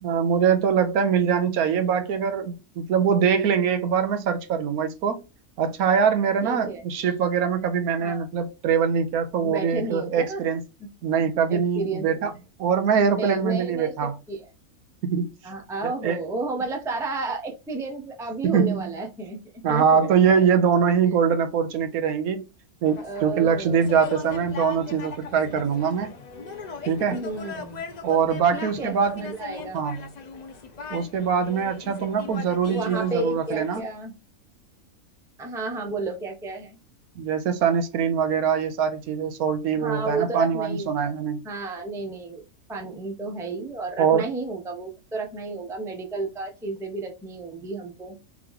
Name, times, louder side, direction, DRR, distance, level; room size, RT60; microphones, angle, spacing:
voice 1, 0.0-5.2 5.6-10.6 11.0-12.3 12.6-14.2 15.0-15.3 15.8-16.2 18.4-18.9 19.6-22.4 22.8-26.1 26.9-27.2 28.0-29.2 29.7-30.0 30.9-33.8 37.2-41.4 44.0-44.3, right 7 dB, 80° right, 1.2 m, -23 dB
voice 2, 6.4-6.8 8.0-8.2 9.4-10.4 11.5-12.3 13.2-14.4 15.4-20.1 23.0-23.7 27.1-27.8 28.5-28.9 29.2-29.8 32.7-34.1 35.4-36.8 39.8-41.1 41.4-42.4 42.7-48.2, right 3 dB, 5° right, 0.4 m, -32 dB
sound 1, 22.8-33.8, left 4 dB, 55° left, 0.4 m, -39 dB
3.6 x 3.0 x 3.6 m
omnidirectional pair, 1.5 m